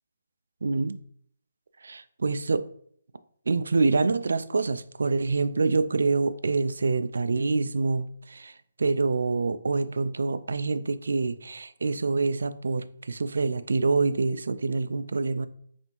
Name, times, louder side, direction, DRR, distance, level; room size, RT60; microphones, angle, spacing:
voice 1, 0.6-1.0 1.8-2.7 3.5-15.5, right 3 dB, 75° right, 0.3 m, -26 dB
4.2 x 3.4 x 3.0 m
hypercardioid pair, 170°, 0 cm